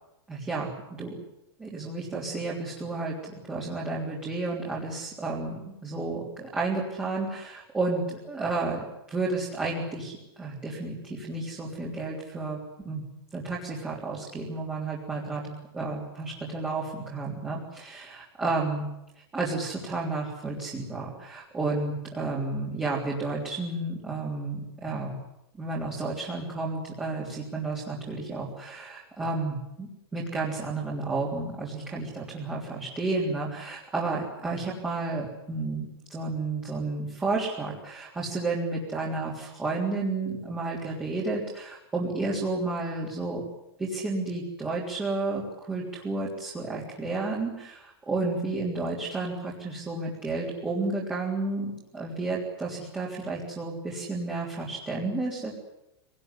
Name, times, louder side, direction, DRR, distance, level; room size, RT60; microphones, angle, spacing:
voice 1, 0.3-0.7 1.0-1.2 1.6-12.6 12.8-13.0 13.3-18.9 19.3-25.2 25.6-43.4 43.8-55.5, right 3 dB, 10° right, -5 dB, 3.4 m, -31 dB
23.5 x 19.0 x 9.8 m, 0.88 s
supercardioid pair, 175°, 13 cm